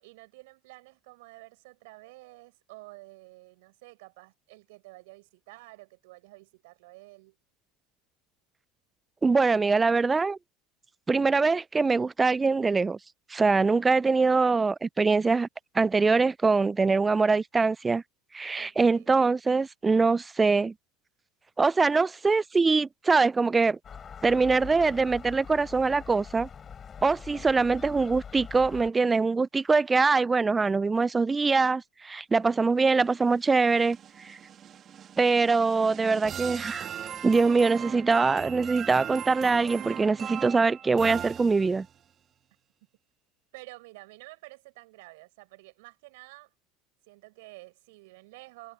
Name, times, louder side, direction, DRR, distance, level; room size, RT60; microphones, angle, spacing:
voice 1, 0.0-7.4 18.5-19.1 43.5-46.5 47.1-48.7, right 23 dB, 70° right, 6.9 m, -50 dB
voice 2, 9.2-10.4 11.1-13.0 13.3-15.5 15.7-18.0 18.3-20.7 21.6-23.8 24.2-26.5 27.0-34.0 34.2-34.4 35.2-36.9 37.2-41.9, right 4 dB, 20° right, 0.4 m, -23 dB
Gull seagull, 23.8-28.9, left 7 dB, 35° left, 7.7 m, -43 dB
sound 1, 33.1-42.0, right 9 dB, 40° right, 2.7 m, -39 dB
hypercardioid pair, 80°, 0 cm